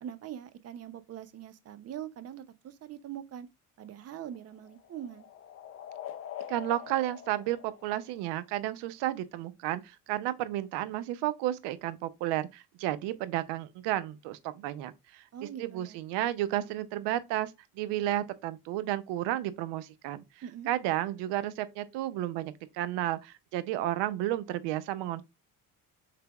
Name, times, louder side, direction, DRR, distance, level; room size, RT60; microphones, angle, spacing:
voice 1, 0.0-3.5 3.8-5.3 15.3-16.0 20.4-20.7, right 10 dB, 40° right, 0.5 m, -43 dB
sound 1, 3.8-8.6, left 10 dB, 35° left, 0.4 m, -45 dB
voice 2, 6.5-15.2 15.6-20.2 20.7-25.2, right 14 dB, 85° right, 0.6 m, -32 dB
4.8 x 3.3 x 2.3 m
cardioid pair, 105°, 40 cm